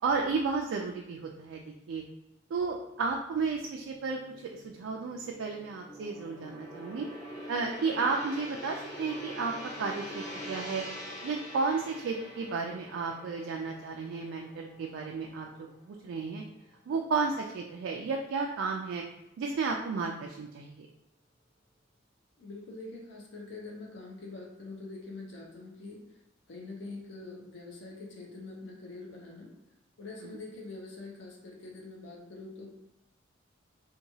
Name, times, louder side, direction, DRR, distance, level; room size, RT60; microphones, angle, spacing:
voice 1, 0.0-2.0 2.5-7.1 7.5-9.5 9.8-10.8 11.2-16.4 16.9-19.0 19.4-20.9 30.2-30.3, right 4 dB, 90° right, 1 dB, 0.3 m, -33 dB
Gong, 3.5-15.9 16.3-16.5, equal, 20° left, 0.5 m, -45 dB
voice 2, 22.4-26.0 26.5-29.5 30.0-32.7, left 3 dB, 70° left, -1 dB, 0.6 m, -44 dB
2.8 x 2.2 x 2.7 m, 0.86 s
head